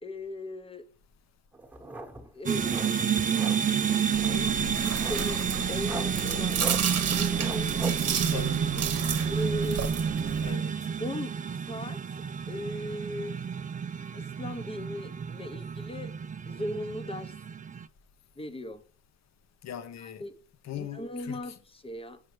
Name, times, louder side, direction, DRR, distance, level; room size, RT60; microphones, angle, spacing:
voice 1, 0.0-0.9 2.3-2.8 4.1-6.6 7.1-8.5 9.3-10.0 11.0-12.0 12.5-13.4 14.1-16.1 16.5-17.3 18.4-18.8 20.0-20.3 20.7-22.2, left 1 dB, 20° left, 0.9 m, -38 dB
sound 1, 1.5-8.1, right 2 dB, 5° right, 1.3 m, -41 dB
sound 2, 2.5-17.9, right 7 dB, 25° right, 0.4 m, -30 dB
Chewing mastication, 4.1-10.5, right 7 dB, 55° right, 1.0 m, -32 dB
voice 2, 8.3-8.9 10.4-10.7 19.6-20.3 20.6-21.5, left 9 dB, 60° left, 0.9 m, -40 dB
6.6 x 5.7 x 3.2 m
cardioid pair, 90°, 30 cm